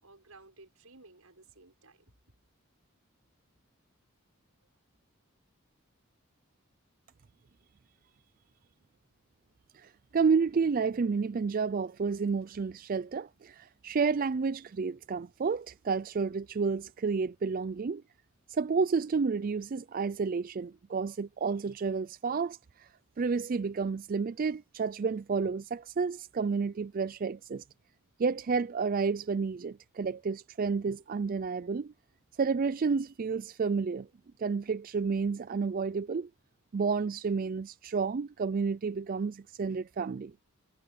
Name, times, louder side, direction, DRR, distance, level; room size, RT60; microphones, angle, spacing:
voice 1, 0.0-2.1, right 3 dB, 85° right, 6.4 m, -56 dB
voice 2, 9.7-18.0 18.5-22.9 23.2-27.6 28.2-31.9 32.4-34.1 34.4-36.3 36.7-40.3, right 5 dB, 40° right, 0.4 m, -30 dB
head